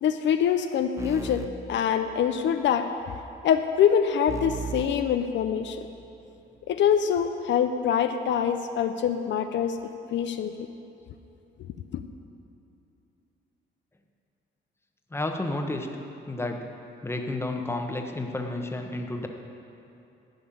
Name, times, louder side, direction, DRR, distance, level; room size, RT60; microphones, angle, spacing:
voice 1, 0.0-2.9 3.4-5.8 6.7-10.7 11.6-12.0, left 8 dB, 70° left, 7 dB, 0.6 m, -25 dB
sound 1, 1.0-2.6 4.3-6.0, right 5 dB, 15° right, 0.6 m, -38 dB
voice 2, 15.1-15.9 16.3-16.6 17.0-19.3, left 2 dB, 10° left, 3 dB, 1.1 m, -31 dB
11.5 x 5.5 x 8.5 m, 2.9 s
cardioid pair, 90°, 20 cm